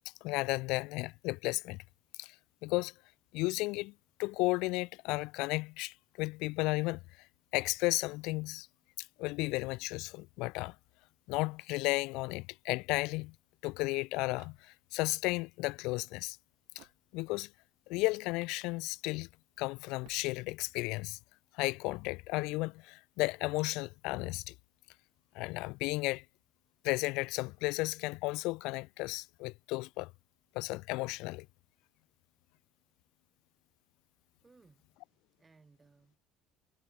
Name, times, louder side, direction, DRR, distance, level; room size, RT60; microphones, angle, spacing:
voice 1, 0.2-1.8 2.2-2.4 2.6-2.9 3.3-3.9 4.2-7.3 7.5-8.7 9.0-10.8 11.3-13.3 13.6-16.4 16.8-16.9 17.1-17.5 17.9-19.3 19.6-21.2 21.5-24.5 25.3-26.2 26.8-30.1 30.5-31.5, left 23 dB, 75° left, 0.3 m, -34 dB
sound 1, 14.3-15.2 16.7-17.6 20.0-20.9, right 24 dB, 75° right, 2.5 m, -65 dB
voice 2, 34.4-36.2, right 4 dB, 15° right, 7.7 m, -64 dB
cardioid pair, 160°, 0 cm